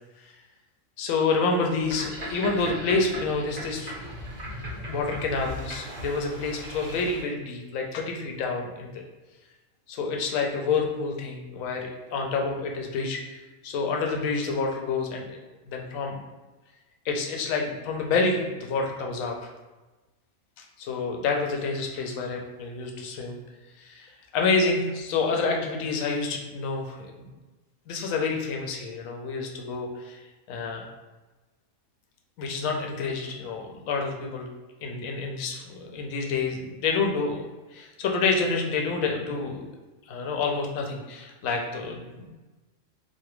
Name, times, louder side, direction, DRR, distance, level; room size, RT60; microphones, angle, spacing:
voice 1, 1.0-4.1 4.8-9.0 9.9-15.4 15.7-16.2 17.0-19.5 20.8-23.4 23.8-27.3 27.9-30.2 30.5-30.9 32.4-34.5 34.8-37.4 37.7-39.6 40.1-42.3, left 4 dB, 75° left, 1 dB, 1.0 m, -28 dB
Boat Water vehicle, 1.8-7.2, equal, 60° right, 1.1 m, -37 dB
3.2 x 2.1 x 3.0 m, 1.2 s
omnidirectional pair, 1.4 m